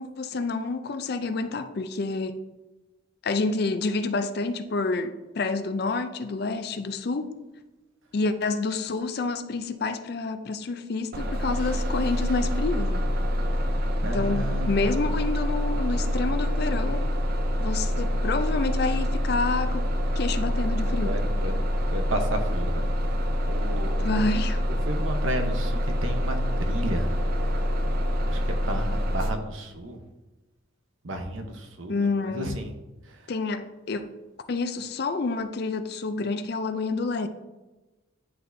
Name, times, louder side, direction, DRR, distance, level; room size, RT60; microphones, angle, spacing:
voice 1, 0.0-2.4 3.2-7.4 8.1-13.0 14.1-17.1 17.6-19.9 20.2-21.1 24.0-24.6 31.9-32.5 33.3-34.1 34.5-37.3, left 3 dB, 50° left, 0.4 m, -28 dB
Bus, 11.1-29.3, equal, 45° right, 0.5 m, -26 dB
voice 2, 14.0-14.9 21.0-21.6 21.9-22.8 23.5-24.1 24.8-27.1 27.6-27.7 28.3-30.0 31.0-32.7 33.0-33.3, right 1 dB, 80° right, 0.9 m, -33 dB
10.0 x 4.2 x 2.7 m
head